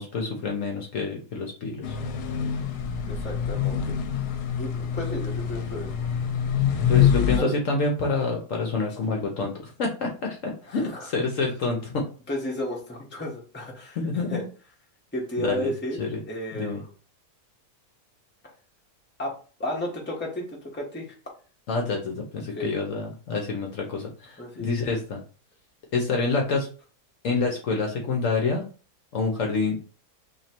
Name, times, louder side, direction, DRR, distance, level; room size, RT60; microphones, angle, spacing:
voice 1, 0.0-2.0 6.9-12.1 14.0-14.4 15.4-15.7 16.0-16.2 16.5-16.8 21.7-25.2 25.9-26.7 27.2-28.7 29.1-29.8, left 3 dB, 60° left, 1 dB, 1.0 m, -27 dB
sound 1, 1.8-7.4, left 8 dB, 80° left, 1.1 m, -25 dB
voice 2, 3.1-3.9 4.6-5.9 7.2-7.6 10.7-11.1 12.3-14.4 15.1-16.0 16.3-16.9 19.2-19.3 19.6-21.1 22.5-22.7 24.4-24.7, left 1 dB, 10° left, -2 dB, 0.9 m, -33 dB
3.1 x 2.8 x 4.3 m, 0.38 s
omnidirectional pair, 1.7 m